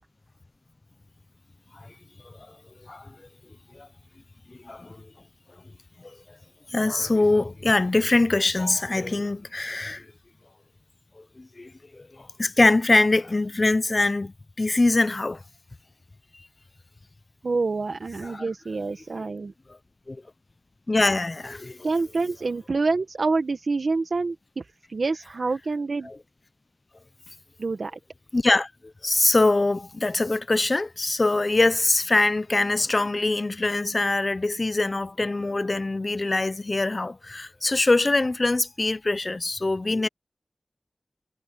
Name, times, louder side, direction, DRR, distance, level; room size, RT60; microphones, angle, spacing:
voice 1, 4.5-5.0 6.7-10.1 11.2-15.4 18.2-18.4 20.1-20.2 20.9-21.8 26.0-26.2 28.3-28.7 29.0-40.1, left 2 dB, 40° left, 0.5 m, -23 dB
voice 2, 17.4-19.5 21.8-24.6 24.9-26.1 27.6-28.0, right 3 dB, 70° right, 1.1 m, -27 dB
wide cardioid pair, 75°, 0 cm